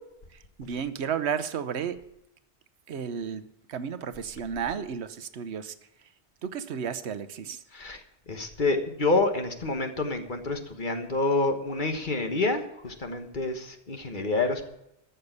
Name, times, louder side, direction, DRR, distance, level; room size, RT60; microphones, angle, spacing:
voice 1, 0.3-2.0 2.9-6.1 6.4-7.6, right 7 dB, 85° right, 12 dB, 1.1 m, -33 dB
voice 2, 8.3-14.6, left 2 dB, 50° left, 6 dB, 1.5 m, -28 dB
14.0 x 6.7 x 8.0 m, 0.84 s
omnidirectional pair, 1.1 m